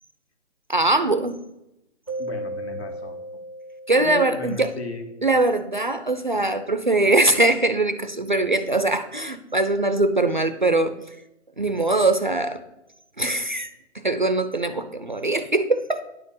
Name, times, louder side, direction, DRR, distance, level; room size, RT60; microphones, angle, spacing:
voice 1, 0.7-1.4 3.9-4.7 5.2-10.9 11.6-12.6 13.2-16.0, right 2 dB, 40° right, 9 dB, 0.4 m, -22 dB
Keyboard (musical), 2.1-4.8, right 1 dB, 30° left, 0.4 m, -35 dB
voice 2, 2.2-3.2 4.0-5.1, left 3 dB, 55° left, 5 dB, 1.8 m, -34 dB
9.8 x 4.3 x 7.0 m, 0.91 s
hypercardioid pair, 175°, 38 cm